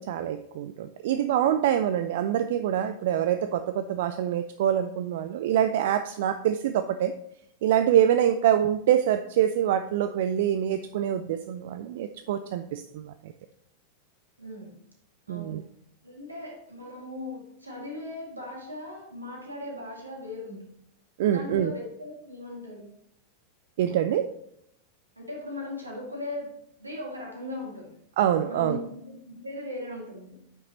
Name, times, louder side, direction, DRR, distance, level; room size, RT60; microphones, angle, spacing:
voice 1, 0.0-7.1 7.6-13.3 15.3-15.6 21.2-21.7 23.8-24.4 28.2-28.8, right 10 dB, 55° right, 9 dB, 0.3 m, -25 dB
voice 2, 14.4-14.8 15.3-15.6 16.0-20.7 21.3-22.9 25.2-26.5 26.8-27.9 28.5-30.4, left 1 dB, 80° right, -1 dB, 2.0 m, -38 dB
9.0 x 5.7 x 2.9 m, 0.73 s
figure-of-eight pair, 90°, 0 cm